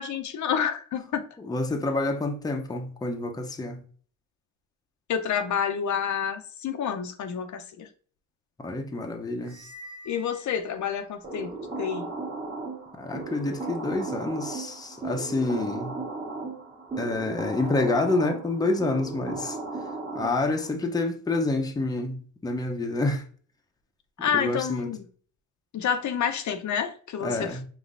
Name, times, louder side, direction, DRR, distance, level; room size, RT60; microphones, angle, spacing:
voice 1, 0.0-1.2 5.1-7.9 10.1-11.5 11.8-12.1 24.2-25.1 25.7-27.6, left 7 dB, 60° left, 0.6 m, -29 dB
voice 2, 1.4-3.8 8.6-9.6 12.9-16.0 17.0-19.6 20.1-23.2 24.3-24.9 27.2-27.6, left 2 dB, 10° left, 0.7 m, -28 dB
sound 1, 9.4-11.3, equal, 75° right, 1.8 m, -48 dB
sound 2, 11.2-20.7, right 3 dB, 25° right, 1.4 m, -36 dB
5.2 x 3.1 x 2.5 m
cardioid pair, 95°, 33 cm